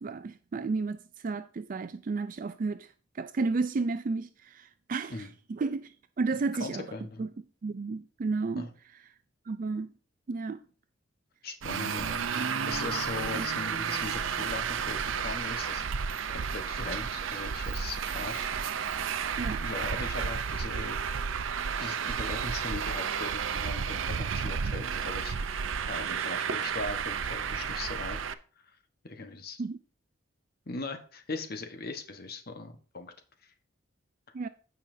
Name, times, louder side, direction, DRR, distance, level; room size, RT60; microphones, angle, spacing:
voice 1, 0.0-1.0 1.2-6.8 7.2-7.3 7.6-8.7 9.5-9.9 10.3-10.6 12.4-12.5 13.3-13.5 19.4-19.6 29.6-29.8 34.3-34.5, right 4 dB, 45° right, 0.4 m, -32 dB
voice 2, 6.6-7.2 8.6-8.7 11.4-15.8 16.3-18.5 19.6-21.2 21.8-28.2 28.6-28.8 29.0-29.6 30.7-33.1 33.4-33.5, left 3 dB, 50° left, 1.2 m, -39 dB
Traffic noise roadway noise, 11.6-28.3, right 6 dB, 90° right, 0.6 m, -32 dB
15.5 x 5.5 x 2.7 m
head